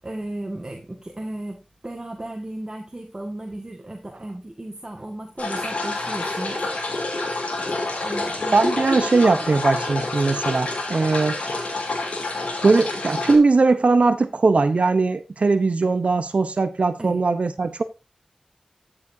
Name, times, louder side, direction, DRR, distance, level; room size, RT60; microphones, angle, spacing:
voice 1, 0.0-6.6 7.6-9.0 17.0-17.2, right 1 dB, 30° right, 1.7 m, -35 dB
sound 1, 5.4-13.4, left 2 dB, 85° left, 3.1 m, -28 dB
voice 2, 8.5-11.4 12.6-17.8, right 3 dB, 65° right, 0.8 m, -20 dB
13.5 x 6.9 x 2.7 m
cardioid pair, 50°, 2 cm